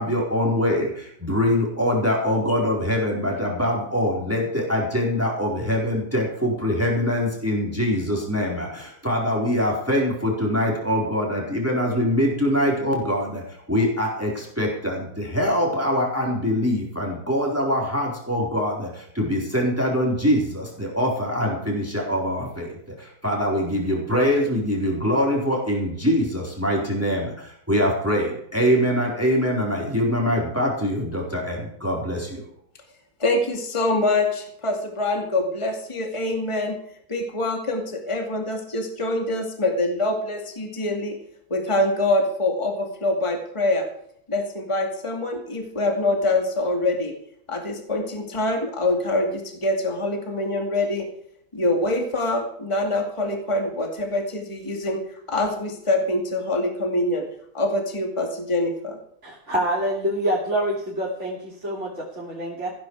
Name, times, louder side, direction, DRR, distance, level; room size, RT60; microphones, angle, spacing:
voice 1, 0.0-32.5, equal, 5° right, -2 dB, 4.3 m, -23 dB
voice 2, 33.2-36.8 37.1-41.1 41.5-43.9 44.3-47.1 47.5-51.1 51.5-55.0 55.3-57.2 57.5-59.0, left 2 dB, 15° left, 3 dB, 2.4 m, -24 dB
voice 3, 59.2-62.7, right 1 dB, 35° right, -5 dB, 3.2 m, -26 dB
15.5 x 14.0 x 4.8 m, 0.68 s
omnidirectional pair, 2.0 m